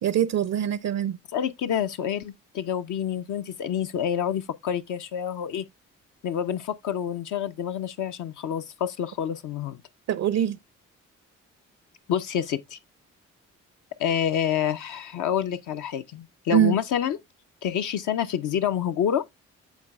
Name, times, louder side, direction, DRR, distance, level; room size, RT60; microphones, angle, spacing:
voice 1, 0.0-1.2 10.1-10.6 16.5-16.8, right 10 dB, 50° right, 0.5 m, -23 dB
voice 2, 1.3-5.6 6.2-9.8 12.1-12.8 14.0-17.2 17.6-19.4, left 9 dB, 60° left, 0.5 m, -28 dB
11.5 x 4.0 x 2.2 m
hypercardioid pair, 45°, 34 cm